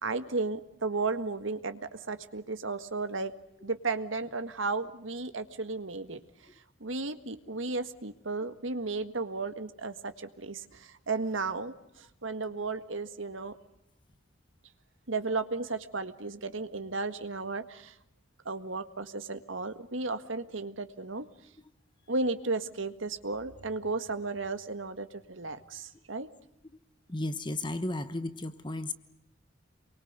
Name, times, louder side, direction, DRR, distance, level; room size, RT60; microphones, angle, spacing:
voice 1, 0.0-3.3 3.6-6.2 6.8-13.6 15.1-17.9 18.5-21.3 22.1-26.3, right 3 dB, 85° right, 9 dB, 1.8 m, -34 dB
voice 2, 27.1-28.9, left 2 dB, 25° left, 11 dB, 1.1 m, -34 dB
28.0 x 23.5 x 8.2 m, 0.80 s
head